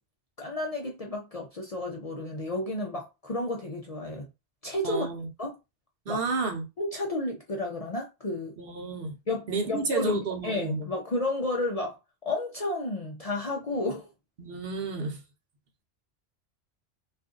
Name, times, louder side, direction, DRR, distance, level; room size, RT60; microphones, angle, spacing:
voice 1, 0.4-4.2 4.6-5.1 5.4-5.6 6.1-6.2 6.8-8.5 9.3-12.0 12.3-14.1, left 2 dB, 45° left, 0.5 m, -32 dB
voice 2, 4.8-5.3 6.1-6.7 8.6-9.1 9.5-10.9 14.4-15.2, right 3 dB, 60° right, 0.9 m, -31 dB
2.5 x 2.5 x 3.6 m
omnidirectional pair, 1.1 m